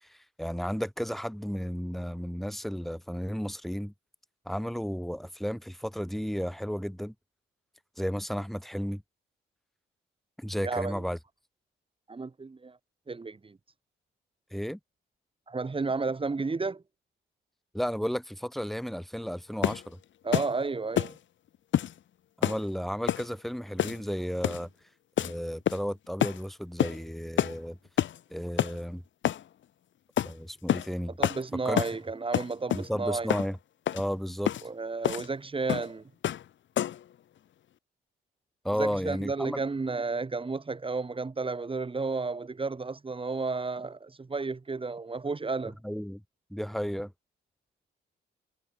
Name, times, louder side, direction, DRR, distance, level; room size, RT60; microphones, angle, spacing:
voice 1, 0.0-3.9 4.5-7.1 8.0-9.0 10.4-11.2 14.5-14.8 17.7-20.0 22.4-24.7 25.2-27.8 28.3-29.0 30.2-31.2 31.6-31.8 32.7-33.6 33.9-34.5 38.6-39.6 45.8-46.2 46.5-47.1, equal, ahead, 4.4 m, -33 dB
voice 2, 10.6-11.0 12.1-12.8 13.1-13.6 15.5-16.8 20.2-21.2 31.2-33.3 34.6-36.0 38.8-45.7, right 4 dB, 25° right, 7.9 m, -32 dB
sound 1, 19.6-19.9 20.3-20.5 21.0-21.2 21.7-21.9 22.4-22.6 23.1-23.3 23.8-24.1 24.4-24.7 25.2-25.3 25.7-25.9 26.2-26.4 26.8-27.0 27.4-27.6 28.0-28.2 28.6-28.8 29.2-29.4 30.2-30.3 30.7-30.9 31.2-31.4 31.8-32.0 32.3-32.9 33.3-33.5 33.9-34.0 34.5-34.6 35.0-35.3 35.7-35.9 36.2-36.5 36.8-37.0, left 11 dB, 70° left, 5.4 m, -28 dB
cardioid pair, 90°, 20 cm